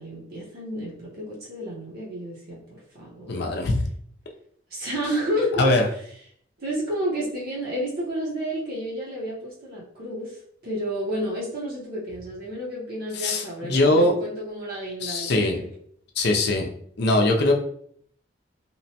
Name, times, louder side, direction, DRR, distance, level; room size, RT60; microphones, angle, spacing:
voice 1, 0.0-3.4 4.7-5.7 6.6-15.7, equal, 50° right, -6 dB, 0.7 m, -31 dB
voice 2, 3.3-3.8 5.6-5.8 13.2-14.1 15.0-15.6 16.2-16.7 17.0-17.5, left 2 dB, 60° left, 1 dB, 0.5 m, -21 dB
2.9 x 2.1 x 2.8 m, 0.64 s
head